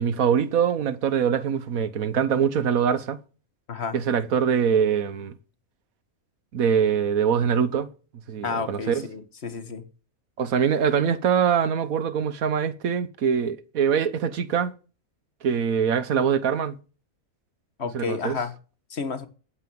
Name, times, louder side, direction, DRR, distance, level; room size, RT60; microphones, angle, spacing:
voice 1, 0.0-3.2 3.9-5.3 6.5-7.9 8.3-9.1 10.4-14.7 15.4-16.7 17.9-18.4, right 7 dB, 80° right, 1.4 m, -23 dB
voice 2, 8.4-9.8 17.8-18.5 18.9-19.3, left 5 dB, 50° left, 1.7 m, -31 dB
9.6 x 9.5 x 7.0 m
omnidirectional pair, 1.5 m